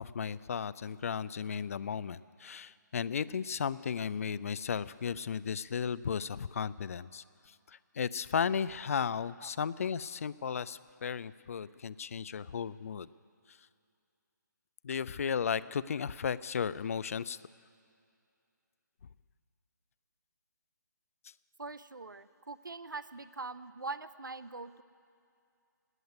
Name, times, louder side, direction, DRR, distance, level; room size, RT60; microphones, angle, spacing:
voice 1, 0.0-13.1 14.8-17.4, left 7 dB, 45° left, 18 dB, 0.4 m, -35 dB
voice 2, 21.6-24.8, right 3 dB, 80° right, 15 dB, 0.6 m, -42 dB
18.5 x 7.9 x 9.6 m, 2.5 s
figure-of-eight pair, 145°, 11 cm